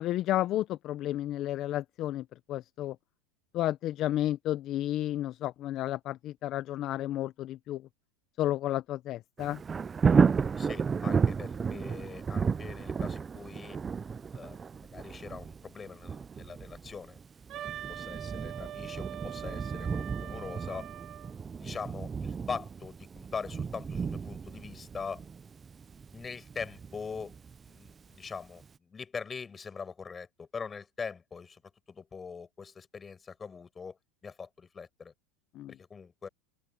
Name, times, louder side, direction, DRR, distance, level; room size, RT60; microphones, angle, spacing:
voice 1, 0.0-3.0 3.5-7.8 8.4-9.6 35.5-35.7, left 13 dB, 40° left, 0.6 m, -32 dB
Thunder, 9.4-28.2 28.6-28.7, right 5 dB, 20° right, 0.4 m, -33 dB
voice 2, 10.6-13.8 14.3-14.6 14.9-17.2 17.5-20.9 21.6-25.2 26.1-27.4 27.6-31.6 31.9-34.0 34.2-35.1 35.7-36.3, left 5 dB, 20° left, 7.8 m, -42 dB
Wind instrument woodwind instrument, 17.5-21.3, right 12 dB, 40° right, 1.6 m, -43 dB
open air
supercardioid pair, 130°, 0 cm